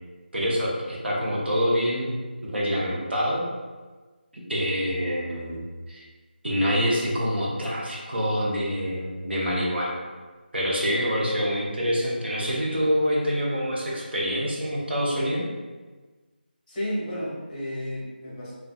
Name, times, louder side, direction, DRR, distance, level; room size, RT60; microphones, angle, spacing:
voice 1, 0.3-2.1 2.4-3.4 4.3-6.0 6.4-10.0 10.5-15.4, equal, 75° right, -5 dB, 0.8 m, -26 dB
voice 2, 16.7-18.5, equal, 20° left, -8 dB, 0.9 m, -32 dB
2.6 x 2.3 x 2.4 m, 1.3 s
figure-of-eight pair, 165°, 6 cm